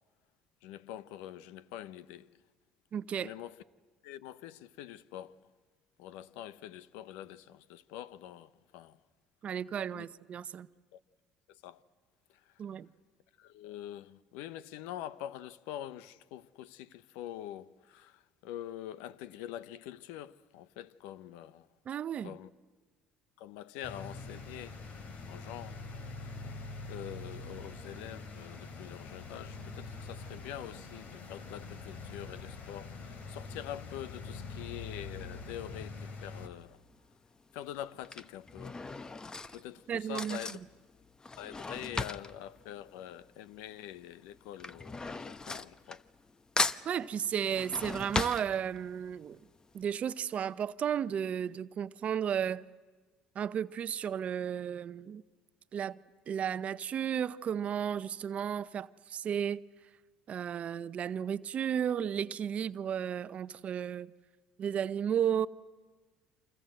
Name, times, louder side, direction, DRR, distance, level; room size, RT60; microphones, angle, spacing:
voice 1, 0.6-2.4 3.2-3.6 4.0-5.4 6.0-9.0 9.9-10.0 10.9-11.0 11.5-11.8 12.3-12.6 13.4-21.7 22.2-22.5 23.4-24.8 25.3-25.8 26.2-26.3 26.9-36.8 37.5-38.8 39.5-40.6 41.4-46.0 60.6-60.7, left 12 dB, 80° left, 0.8 m, -45 dB
voice 2, 2.9-3.3 9.4-10.7 12.6-12.9 21.9-22.3 39.9-40.4 46.8-49.4 49.7-52.7 53.3-55.2 55.7-56.0 56.3-59.6 60.3-64.1 64.6-65.5, right 8 dB, 50° right, 0.7 m, -33 dB
sound 1, 23.8-36.5, left 3 dB, 55° left, 3.0 m, -44 dB
Drawer open or close / Cutlery silverware, 36.6-36.9 37.8-43.7 43.9-46.3 46.6-49.1 49.5-49.6 49.8-49.9, left 3 dB, 25° left, 1.0 m, -37 dB
28.5 x 25.5 x 7.8 m
supercardioid pair, 80°, 3 cm